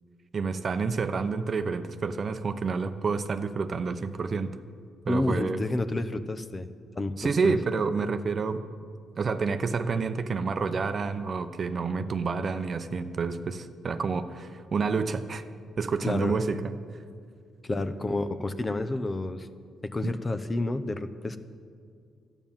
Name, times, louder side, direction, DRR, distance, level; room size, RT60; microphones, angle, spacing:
voice 1, 0.3-4.5 5.1-5.7 7.2-8.6 9.2-15.4 15.8-16.7, right 4 dB, 45° right, 9 dB, 0.7 m, -29 dB
voice 2, 5.1-6.7 7.0-7.5 16.0-16.4 17.6-19.5 19.8-21.4, left 2 dB, 25° left, 10 dB, 0.7 m, -30 dB
12.5 x 9.0 x 7.3 m, 2.3 s
cardioid pair, 90°, 0 cm